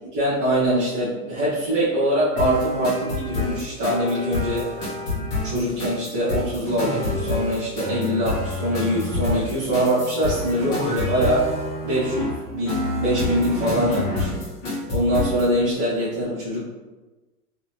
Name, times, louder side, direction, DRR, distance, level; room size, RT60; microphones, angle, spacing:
voice 1, 0.0-4.8 5.1-11.6 11.8-14.5 14.9-16.6, equal, 35° right, -12 dB, 1.2 m, -23 dB
sound 1, 2.4-15.5, left 2 dB, 20° left, 1.4 m, -28 dB
3.6 x 3.4 x 2.9 m, 1.2 s
supercardioid pair, 165°, 47 cm